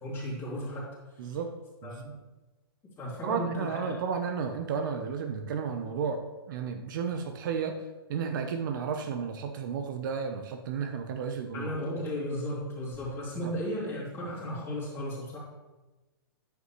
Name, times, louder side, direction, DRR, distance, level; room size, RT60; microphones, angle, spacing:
voice 1, 0.0-0.9 1.8-2.0 3.0-3.9 11.5-15.4, equal, 20° left, -5 dB, 2.8 m, -35 dB
voice 2, 1.2-1.6 1.8-2.2 3.2-11.7 13.4-13.5, right 6 dB, 50° right, 6 dB, 0.8 m, -33 dB
9.4 x 8.4 x 3.1 m, 1.1 s
hypercardioid pair, 150°, 13 cm